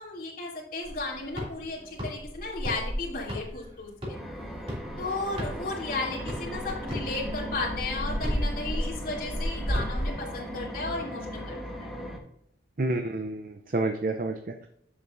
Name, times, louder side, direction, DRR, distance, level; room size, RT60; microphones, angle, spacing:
voice 1, 0.0-4.2 5.0-11.9, left 3 dB, 50° left, -4 dB, 3.1 m, -34 dB
sound 1, 0.8-5.9 6.3-10.1, equal, 30° right, 2.7 m, -33 dB
sound 2, 4.1-12.2, equal, ahead, 1.2 m, -38 dB
voice 2, 12.8-14.7, right 2 dB, 50° right, 5 dB, 0.6 m, -29 dB
10.0 x 7.3 x 2.6 m, 0.75 s
head